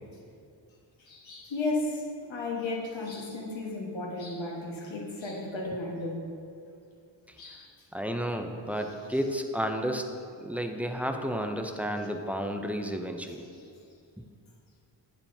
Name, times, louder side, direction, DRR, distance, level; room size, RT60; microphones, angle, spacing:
voice 1, 1.0-6.3 7.4-7.7 13.2-13.7, left 2 dB, 80° left, -2 dB, 1.3 m, -34 dB
voice 2, 7.9-10.1 10.4-13.5, equal, 5° right, 5 dB, 0.4 m, -32 dB
8.6 x 7.3 x 2.6 m, 2.4 s
wide cardioid pair, 85°, 45 cm